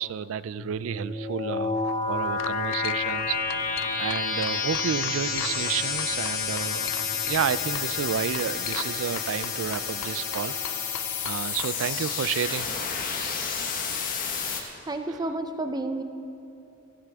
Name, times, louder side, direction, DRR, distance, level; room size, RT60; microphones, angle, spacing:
voice 1, 0.0-3.4 4.0-6.9 7.3-10.5 11.2-12.7 14.5-14.7 15.1-15.2, right 8 dB, 70° right, 17 dB, 0.3 m, -31 dB
sound 1, 0.6-14.6, left 5 dB, 40° left, 1.3 m, -30 dB
sound 2, 1.6-1.9 2.4-3.2 3.5-5.7 6.0-7.5 7.7-7.9 8.3-8.9 9.2-11.7, left 10 dB, 65° left, 0.4 m, -38 dB
sound 3, 2.0-10.2, equal, 40° right, 2.7 m, -50 dB
voice 2, 14.9-16.0, right 2 dB, 20° right, 7 dB, 0.6 m, -30 dB
15.5 x 15.0 x 3.6 m, 2.7 s
head